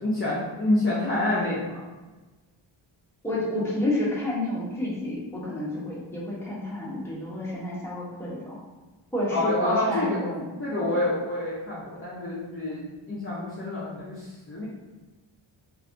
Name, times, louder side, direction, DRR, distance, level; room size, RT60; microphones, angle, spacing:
voice 1, 0.0-1.8 9.3-10.2 10.6-14.6, left 1 dB, 25° left, -9 dB, 0.6 m, -27 dB
voice 2, 3.2-8.6 9.1-10.5 10.8-11.0, left 1 dB, 5° left, -7 dB, 1.0 m, -30 dB
3.2 x 2.6 x 2.6 m, 1.2 s
wide cardioid pair, 105°, 49 cm